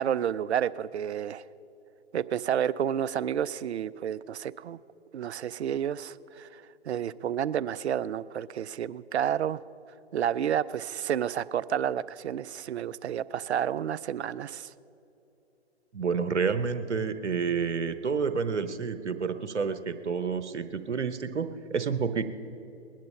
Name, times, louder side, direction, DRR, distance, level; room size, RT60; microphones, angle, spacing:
voice 1, 0.0-1.4 2.1-4.8 5.1-9.6 10.1-14.7, right 9 dB, 70° right, 18 dB, 0.5 m, -30 dB
voice 2, 15.9-22.2, right 5 dB, 85° right, 11 dB, 1.0 m, -29 dB
20.5 x 10.5 x 5.5 m, 2.8 s
hypercardioid pair, 130°, 34 cm